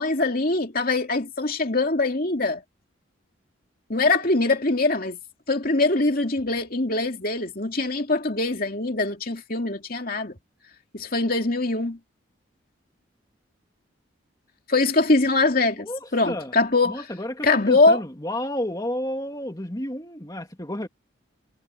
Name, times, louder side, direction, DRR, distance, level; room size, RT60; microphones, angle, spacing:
voice 1, 0.0-2.6 3.9-5.2 5.5-10.3 10.9-12.0 14.7-15.9 16.1-17.0 17.4-18.0, left 3 dB, 45° left, 2.8 m, -22 dB
voice 2, 15.8-16.5 16.9-20.9, left 1 dB, 20° left, 2.6 m, -31 dB
head